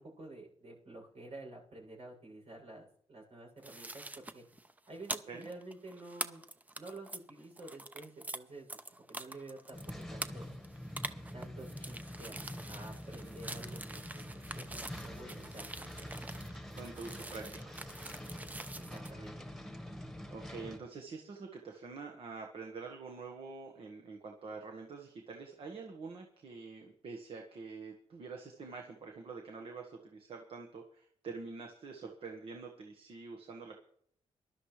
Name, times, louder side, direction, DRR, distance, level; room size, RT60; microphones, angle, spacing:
voice 1, 0.0-4.4 4.9-6.4 6.8-8.7 9.1-9.8 10.1-10.5 11.3-16.1 18.7-19.4, right 2 dB, 75° right, -1 dB, 7.3 m, -50 dB
sound 1, 3.6-8.4 8.7-19.1, right 2 dB, 15° right, 0.8 m, -45 dB
sound 2, 9.7-20.8, equal, ahead, 1.5 m, -46 dB
voice 2, 16.8-17.8 20.3-33.7, right 4 dB, 60° right, 3 dB, 1.5 m, -46 dB
19.5 x 12.0 x 3.3 m, 0.64 s
cardioid pair, 110°, 11 cm